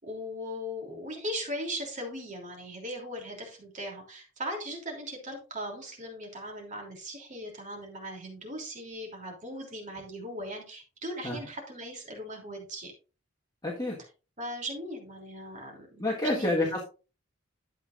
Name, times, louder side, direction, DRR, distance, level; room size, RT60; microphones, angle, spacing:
voice 1, 0.0-12.9 14.4-16.8, equal, 35° right, 1 dB, 3.2 m, -39 dB
voice 2, 13.6-14.0 16.0-16.8, left 1 dB, 20° left, -3 dB, 1.7 m, -28 dB
12.0 x 8.1 x 2.6 m, 0.33 s
head